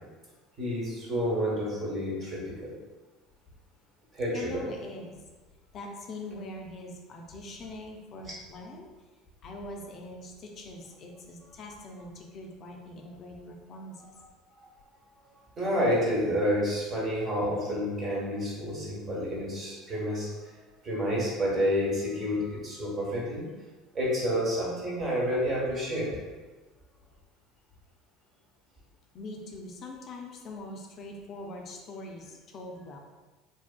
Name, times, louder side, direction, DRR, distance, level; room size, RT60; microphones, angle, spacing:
voice 1, 0.6-2.7 4.1-4.6 14.6-14.7 15.6-23.5 23.9-26.2, equal, 40° right, -5 dB, 1.1 m, -29 dB
voice 2, 4.3-5.3 5.7-8.9 9.4-14.1 29.1-33.0, left 2 dB, 45° left, 1 dB, 0.4 m, -42 dB
2.6 x 2.4 x 2.2 m, 1.3 s
hypercardioid pair, 75°, 0 cm